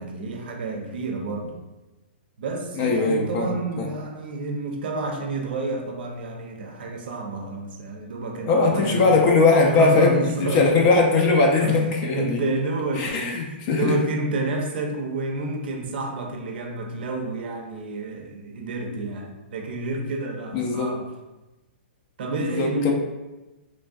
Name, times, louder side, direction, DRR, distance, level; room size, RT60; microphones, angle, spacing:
voice 1, 0.0-1.6 2.4-9.1 9.6-10.7 11.2-21.1 22.2-22.9, right 2 dB, 60° right, 3 dB, 0.5 m, -30 dB
voice 2, 2.8-3.9 8.4-12.4 13.0-14.0 20.5-20.9 22.4-22.9, left 3 dB, 35° left, 0 dB, 0.4 m, -20 dB
3.2 x 2.5 x 2.3 m, 1.1 s
hypercardioid pair, 135°, 6 cm